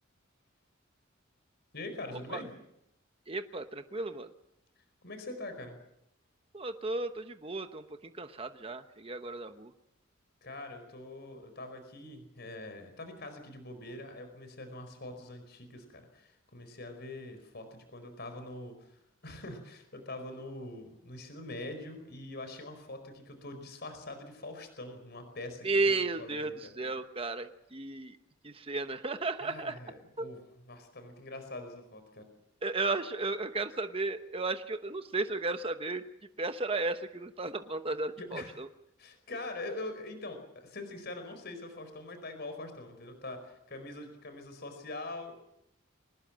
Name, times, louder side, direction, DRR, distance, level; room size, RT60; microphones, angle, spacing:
voice 1, 1.7-2.5 5.0-5.8 10.4-26.7 29.4-30.4 30.7-32.2 38.2-38.6 39.0-45.3, left 2 dB, 55° left, 8 dB, 4.8 m, -43 dB
voice 2, 3.3-4.3 6.5-9.7 25.6-28.2 28.4-29.7 30.2-30.3 32.6-36.1 36.4-38.7, right 3 dB, 30° right, 8 dB, 1.0 m, -34 dB
24.5 x 19.5 x 7.5 m, 0.80 s
head